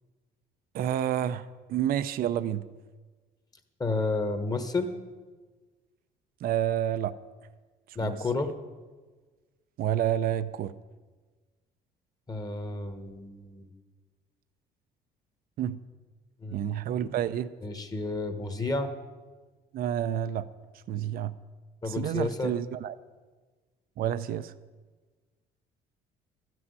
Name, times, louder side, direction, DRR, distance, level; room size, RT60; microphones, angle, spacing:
voice 1, 0.7-2.6 6.4-7.1 8.0-8.2 9.8-10.7 15.6-15.8 16.5-17.5 19.7-20.5 20.9-21.3 21.8-22.9 24.0-24.5, right 10 dB, 60° right, 13 dB, 0.5 m, -29 dB
voice 2, 3.8-4.9 7.9-8.5 12.3-13.7 16.4-16.6 17.6-18.9 21.8-22.5, left 3 dB, 20° left, 7 dB, 1.4 m, -31 dB
13.0 x 6.2 x 9.6 m, 1.4 s
cardioid pair, 110°, 17 cm